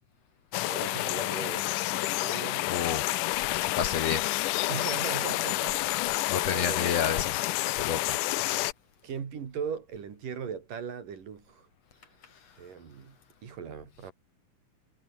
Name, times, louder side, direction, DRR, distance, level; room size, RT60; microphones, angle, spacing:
sound 1, 0.5-8.7, left 18 dB, 80° left, 2.1 m, -29 dB
voice 1, 0.7-2.7 4.7-5.8 6.1-7.2 9.0-11.7 12.6-13.2 13.4-14.1, right 7 dB, 75° right, 4.8 m, -39 dB
voice 2, 2.7-3.4 3.8-4.2 6.3-7.3 7.8-8.2, left 7 dB, 55° left, 2.4 m, -30 dB
omnidirectional pair, 3.9 m